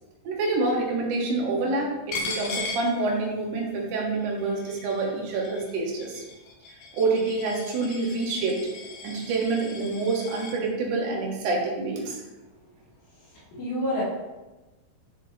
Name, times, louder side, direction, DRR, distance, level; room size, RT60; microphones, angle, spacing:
voice 1, 0.2-6.2 6.9-8.6 9.0-12.2, right 3 dB, 65° right, -2 dB, 3.3 m, -27 dB
Coin (dropping), 2.1-3.6 4.0-10.6, left 3 dB, 65° left, 3.2 m, -38 dB
voice 2, 13.2-14.0, left 1 dB, 85° left, -8 dB, 5.3 m, -29 dB
12.0 x 6.0 x 2.9 m, 1.1 s
omnidirectional pair, 5.3 m